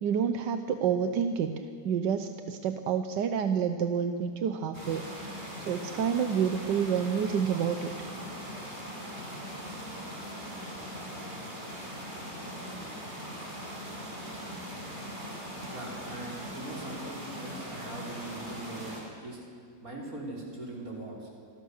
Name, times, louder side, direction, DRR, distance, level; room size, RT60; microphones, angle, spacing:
voice 1, 0.0-5.0 5.7-7.9, right 7 dB, 85° right, 8 dB, 1.5 m, -29 dB
sound 1, 4.7-19.0, equal, 25° right, 6.7 m, -40 dB
voice 2, 15.7-18.9 19.2-19.4 19.8-21.3, right 2 dB, 55° right, -3 dB, 5.6 m, -41 dB
27.5 x 21.0 x 6.6 m, 2.2 s
omnidirectional pair, 1.8 m